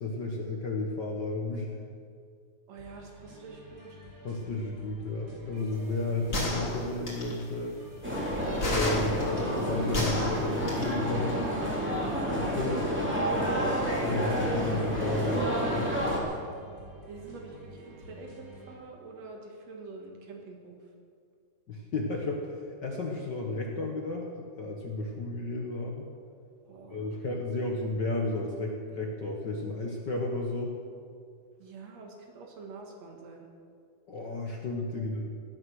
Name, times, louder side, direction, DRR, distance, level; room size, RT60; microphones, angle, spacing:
voice 1, 0.0-1.7 4.2-7.8 8.6-11.4 12.3-12.8 14.0-15.9 21.7-22.5 22.8-24.2 24.6-26.0 26.9-30.7 34.1-35.2, left 2 dB, 45° left, 0 dB, 1.6 m, -33 dB
voice 2, 2.7-4.0 12.4-12.8 17.1-20.8 26.7-27.1 27.6-27.7 31.6-33.5 34.9-35.1, right 3 dB, 65° right, 1 dB, 2.9 m, -46 dB
sound 1, 2.8-18.8, right 1 dB, 35° right, 5.8 m, -50 dB
sound 2, 6.3-7.4 8.6-10.9, left 1 dB, 25° left, 3.0 m, -31 dB
sound 3, 8.0-16.2, equal, 5° right, 2.6 m, -29 dB
17.5 x 11.0 x 6.4 m, 2.3 s
omnidirectional pair, 3.3 m